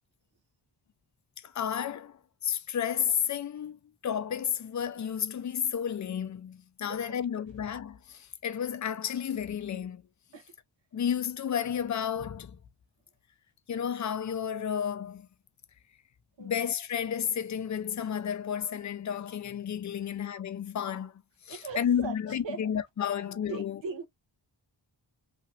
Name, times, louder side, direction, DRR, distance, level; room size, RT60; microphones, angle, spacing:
voice 1, 1.4-2.2 2.4-10.0 10.9-12.6 13.7-15.3 16.4-21.1 21.5-23.8, left 8 dB, 40° left, 0.5 m, -32 dB
voice 2, 21.5-22.6 23.0-23.1 23.4-24.1, right 4 dB, 75° right, 1.1 m, -39 dB
2.9 x 2.8 x 2.7 m
wide cardioid pair, 90°, 45 cm